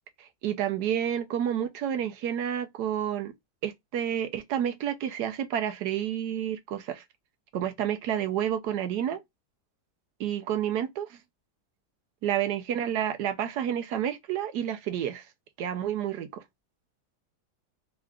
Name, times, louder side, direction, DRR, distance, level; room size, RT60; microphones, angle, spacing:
voice 1, 0.2-3.3 3.6-7.0 7.5-9.2 10.2-11.1 12.2-15.2 15.6-16.4, right 10 dB, 75° right, 1.2 m, -30 dB
3.7 x 2.4 x 3.4 m
omnidirectional pair, 1.8 m